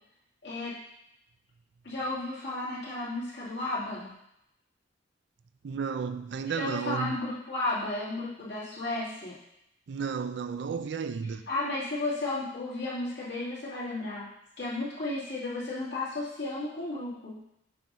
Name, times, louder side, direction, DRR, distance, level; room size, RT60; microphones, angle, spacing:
voice 1, 0.4-0.7 1.8-4.1 6.5-9.4 11.5-14.3 14.6-17.4, left 2 dB, 65° left, 2.4 m, -33 dB
voice 2, 5.6-7.2 9.9-11.4, right 6 dB, 60° right, 0.4 m, -33 dB
7.5 x 2.7 x 5.5 m
head